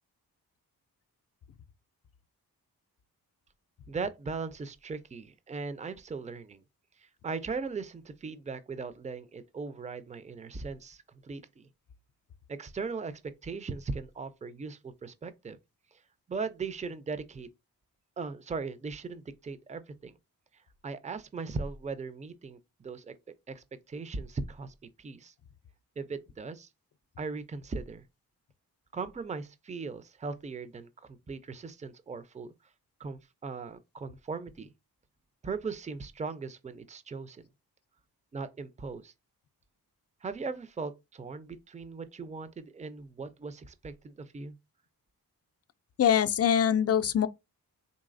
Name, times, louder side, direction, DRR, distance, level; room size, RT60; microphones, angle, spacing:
voice 1, 3.9-6.6 7.0-11.7 12.5-15.6 15.9-16.0 16.3-17.5 18.2-20.1 20.8-23.1 23.5-25.3 26.0-26.7 27.2-28.0 28.9-30.9 31.3-32.5 33.0-34.7 35.4-37.5 38.3-39.1 40.2-44.5, right 4 dB, 20° right, 0.5 m, -38 dB
voice 2, 46.0-47.3, left 9 dB, 40° left, 0.4 m, -23 dB
4.0 x 3.1 x 2.5 m
cardioid pair, 60°, 38 cm